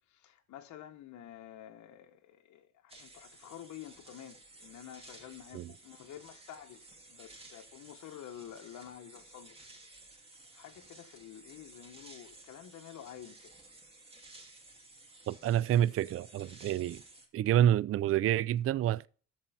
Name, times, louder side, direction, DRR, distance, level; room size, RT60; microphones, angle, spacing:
voice 1, 0.0-9.6 10.5-13.6, left 10 dB, 70° left, 1.0 m, -50 dB
sound 1, 2.9-17.3, right 2 dB, 20° right, 2.4 m, -55 dB
voice 2, 15.3-17.0 17.3-19.1, right 11 dB, 50° right, 0.4 m, -28 dB
13.0 x 4.4 x 5.5 m
cardioid pair, 90°, 30 cm